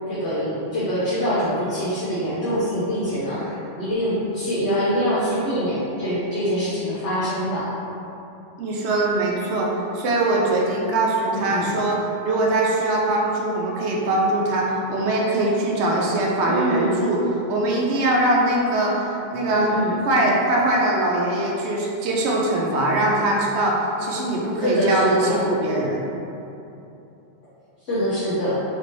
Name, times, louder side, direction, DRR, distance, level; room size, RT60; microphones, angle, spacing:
voice 1, 0.1-7.7 11.3-11.7 16.5-17.0 19.4-19.9 24.6-25.4 27.9-28.5, equal, 75° left, -11 dB, 1.1 m, -24 dB
voice 2, 8.6-9.7 9.9-19.7 20.1-26.1, right 1 dB, 70° right, -2 dB, 0.8 m, -22 dB
3.3 x 2.7 x 3.0 m, 2.8 s
omnidirectional pair, 1.3 m